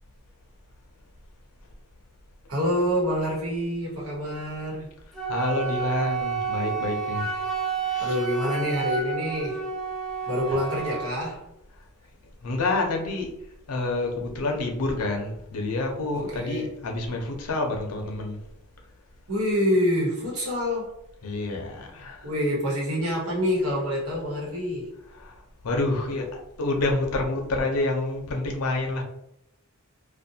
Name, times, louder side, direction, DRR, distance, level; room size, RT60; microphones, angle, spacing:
voice 1, 2.5-4.9 8.0-9.6 10.2-11.5 16.1-16.7 19.3-21.0 22.2-24.9, equal, 70° right, -4 dB, 1.1 m, -26 dB
Wind instrument woodwind instrument, 5.1-11.2, right 6 dB, ahead, 0.5 m, -30 dB
voice 2, 5.3-7.5 7.8-8.2 12.4-13.3 13.7-18.4 21.2-22.3 25.2-29.0, left 2 dB, 90° left, 2 dB, 0.6 m, -28 dB
2.5 x 2.1 x 2.7 m, 0.81 s
head